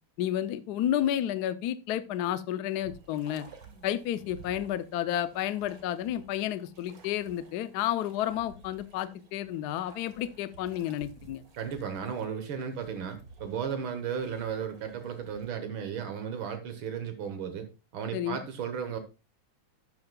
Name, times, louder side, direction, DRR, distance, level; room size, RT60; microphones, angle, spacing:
voice 1, 0.2-3.5 3.8-11.4 18.1-18.4, left 11 dB, 75° left, 13 dB, 0.9 m, -31 dB
sound 1, 2.7-15.5, right 4 dB, 45° right, 1.9 m, -54 dB
voice 2, 11.6-17.7 17.9-19.0, right 7 dB, 75° right, 7 dB, 1.9 m, -35 dB
12.5 x 9.4 x 2.2 m, 0.28 s
omnidirectional pair, 2.3 m